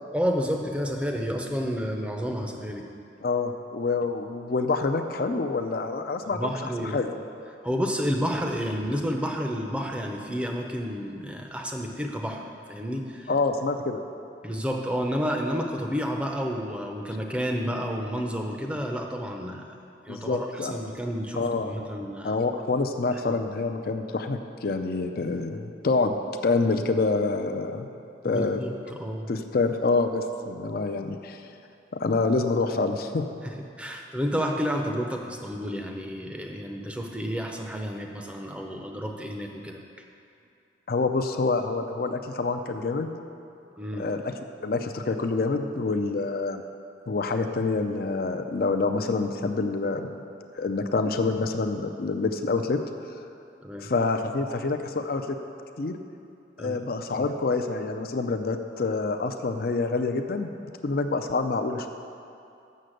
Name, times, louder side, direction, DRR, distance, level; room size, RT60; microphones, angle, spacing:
voice 1, 0.1-2.9 6.3-7.0 7.6-13.3 14.4-19.8 20.1-22.3 23.1-23.4 28.2-29.3 33.4-39.8 43.8-44.0 53.6-53.9 56.6-56.8, equal, 5° right, 2 dB, 0.6 m, -30 dB
voice 2, 3.2-6.5 6.9-7.1 13.3-14.0 20.1-20.8 21.3-21.7 22.2-26.2 26.4-27.9 28.2-28.6 29.3-31.4 31.9-33.3 40.9-43.1 44.0-44.3 44.6-46.6 47.1-50.1 50.6-52.8 53.8-55.4 55.8-56.0 56.6-60.5 60.8-61.9, left 3 dB, 50° left, 6 dB, 0.4 m, -27 dB
6.7 x 6.5 x 7.7 m, 2.6 s
head